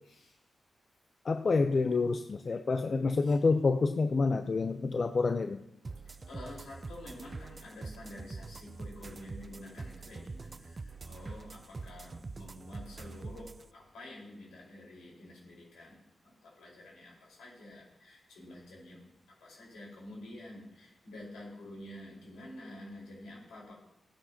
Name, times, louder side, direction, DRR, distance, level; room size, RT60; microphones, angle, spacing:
voice 1, 1.2-5.6, left 4 dB, 55° left, 8 dB, 0.5 m, -28 dB
sound 1, 5.8-13.6, right 3 dB, 45° right, 0.4 m, -44 dB
voice 2, 6.3-23.8, left 1 dB, 90° left, -4 dB, 4.7 m, -49 dB
16.0 x 9.9 x 2.9 m, 0.85 s
supercardioid pair, 45°, 0 cm